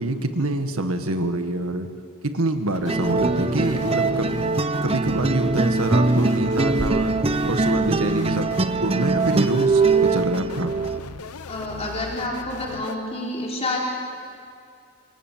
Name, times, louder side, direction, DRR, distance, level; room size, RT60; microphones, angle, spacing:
voice 1, 0.0-1.9 2.3-4.3 4.8-7.2 7.5-8.5 8.8-10.7, right 2 dB, 70° right, 7 dB, 1.8 m, -25 dB
sound 1, 2.7-13.0, left 4 dB, 90° left, 0.9 m, -39 dB
sound 2, 2.9-11.0, right 3 dB, 25° right, 0.8 m, -22 dB
voice 2, 11.5-13.8, left 2 dB, 30° left, -2 dB, 4.1 m, -28 dB
28.0 x 26.5 x 7.5 m, 2.4 s
head